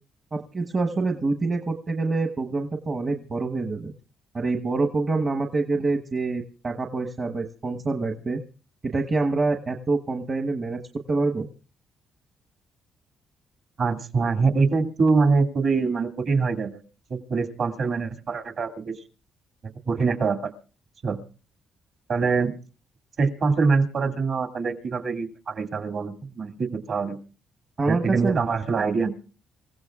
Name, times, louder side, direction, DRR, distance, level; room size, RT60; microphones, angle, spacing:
voice 1, 0.3-3.9 4.3-8.4 8.8-10.8 11.1-11.5 27.8-28.4, right 3 dB, 40° right, 3 dB, 1.1 m, -26 dB
voice 2, 13.8-16.8 17.1-19.0 19.6-20.5 21.0-21.2 22.1-22.5 23.2-27.2 27.9-29.1, right 4 dB, 60° right, 5 dB, 2.2 m, -24 dB
27.5 x 16.0 x 2.4 m, 0.34 s
cardioid pair, 90°, 0 cm